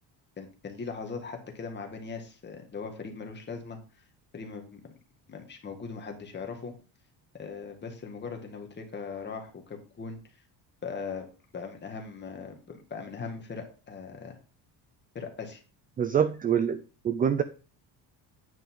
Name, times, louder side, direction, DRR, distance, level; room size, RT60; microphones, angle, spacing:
voice 1, 0.4-3.8 4.3-4.9 5.3-6.7 7.4-10.2 10.8-11.3 11.5-14.4 15.1-15.6, left 5 dB, 25° left, 4 dB, 1.8 m, -39 dB
voice 2, 16.0-17.4, right 8 dB, 20° right, 12 dB, 0.3 m, -26 dB
9.3 x 5.5 x 3.7 m, 0.36 s
cardioid pair, 160°, 42 cm